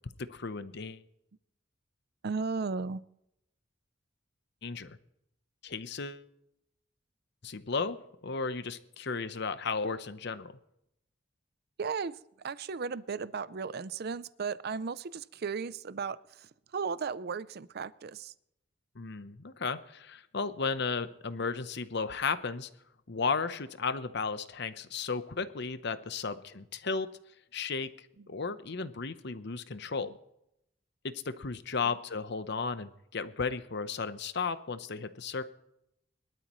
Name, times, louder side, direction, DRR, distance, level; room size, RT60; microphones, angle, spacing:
voice 1, 0.2-1.0 4.6-5.0 5.6-6.2 7.4-8.0 8.2-10.5 19.0-22.7 23.1-27.1 27.5-27.9 28.3-30.1 31.0-35.4, left 4 dB, 65° left, 12 dB, 0.9 m, -34 dB
voice 2, 2.2-3.0 11.8-18.3 28.2-28.3, right 5 dB, 55° right, 17 dB, 0.5 m, -36 dB
23.0 x 12.5 x 3.1 m, 0.79 s
head